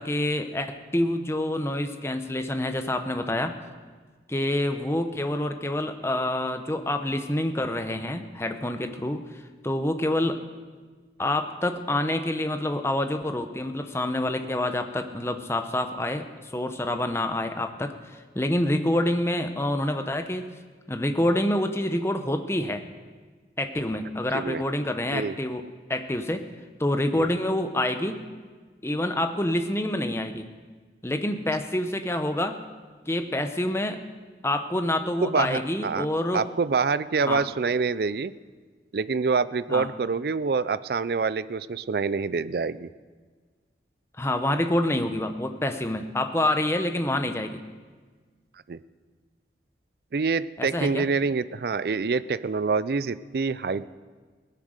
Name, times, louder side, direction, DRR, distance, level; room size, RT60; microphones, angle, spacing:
voice 1, 0.0-3.5 4.3-10.4 11.2-20.5 20.9-22.8 23.6-25.6 25.9-26.5 26.8-28.2 28.8-30.5 31.0-32.6 33.1-34.0 34.4-36.5 37.2-37.5 39.7-39.9 44.2-47.6 50.6-51.0, left 1 dB, 15° left, 7 dB, 0.8 m, -27 dB
voice 2, 35.2-36.1 36.3-38.3 38.9-42.9 48.7-48.8 50.1-53.9, right 4 dB, 55° right, 17 dB, 0.4 m, -26 dB
18.0 x 10.0 x 6.5 m, 1.4 s
head